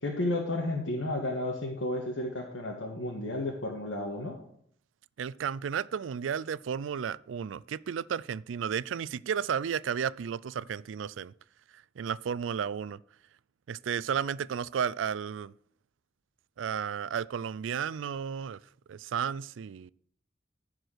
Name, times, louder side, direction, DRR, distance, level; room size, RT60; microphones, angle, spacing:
voice 1, 0.0-4.4, left 1 dB, 90° left, 1.6 m, -32 dB
voice 2, 5.2-11.3 12.0-13.0 13.7-15.5 16.6-18.6 18.9-19.9, right 7 dB, 90° right, 0.4 m, -33 dB
14.5 x 4.8 x 6.4 m
head